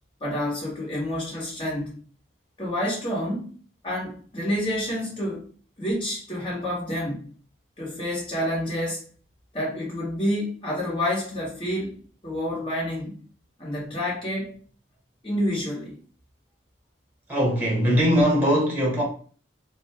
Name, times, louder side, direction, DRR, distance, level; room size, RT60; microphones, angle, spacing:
voice 1, 0.2-2.0 2.6-3.5 3.8-5.4 5.8-7.3 7.8-9.0 9.5-11.9 12.2-13.2 13.6-14.6 15.2-15.9, left 1 dB, 30° left, 1.4 m, -28 dB
voice 2, 17.3-19.0, equal, 10° right, 1.1 m, -21 dB
3.0 x 2.3 x 4.2 m
head